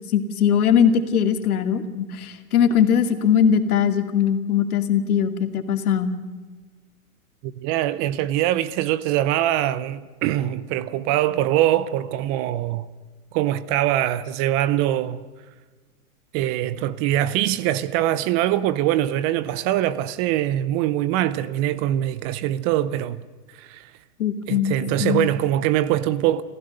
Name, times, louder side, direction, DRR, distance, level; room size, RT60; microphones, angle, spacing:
voice 1, 0.1-6.1 24.2-24.7 25.0-25.3, left 8 dB, 70° left, 2.4 m, -20 dB
voice 2, 7.4-12.9 13.3-15.2 16.3-23.2 23.5-23.9 24.5-26.4, right 13 dB, 30° right, 0.7 m, -23 dB
28.0 x 15.5 x 6.7 m
hypercardioid pair, 135°, 45 cm